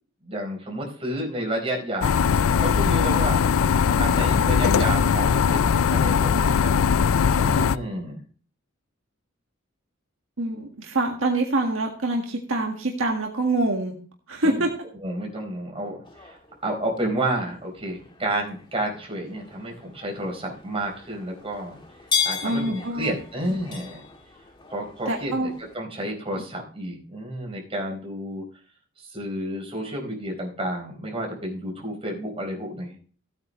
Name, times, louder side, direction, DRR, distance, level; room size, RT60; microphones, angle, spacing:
voice 1, 0.2-2.3 2.6-3.4 4.0-6.7 7.4-8.2 14.4-14.6 15.0-21.8 22.2-24.0 24.7-28.4 29.0-33.0, right 1 dB, 25° right, 0 dB, 4.3 m, -30 dB
sound 1, 2.0-7.8, left 6 dB, 85° left, 0.4 m, -20 dB
voice 2, 10.4-13.9 14.3-14.7 22.4-23.1 25.1-25.5, right 2 dB, 75° right, 1 dB, 1.8 m, -25 dB
sound 2, 16.0-25.8, left 6 dB, 25° left, 1.6 m, -35 dB
16.0 x 9.0 x 3.1 m, 0.41 s
head